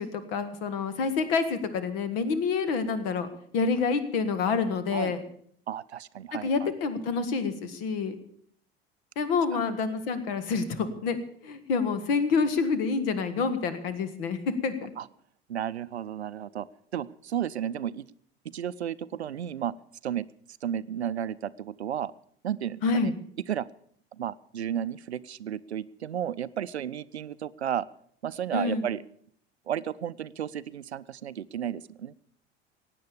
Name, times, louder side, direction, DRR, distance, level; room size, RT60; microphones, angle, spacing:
voice 1, 0.0-3.3 3.5-5.2 6.4-8.1 9.1-11.2 11.4-14.9 22.8-23.1 28.5-28.9, left 5 dB, 65° left, 12 dB, 1.7 m, -27 dB
voice 2, 5.7-6.7 9.5-9.6 15.0-15.1 15.5-16.7 16.9-18.1 18.4-19.7 20.0-20.3 20.6-22.1 22.4-23.1 23.5-23.7 24.2-27.9 28.2-29.0 29.7-32.1, right 10 dB, 85° right, 18 dB, 0.5 m, -33 dB
16.5 x 9.3 x 7.0 m, 0.63 s
figure-of-eight pair, 70°, 32 cm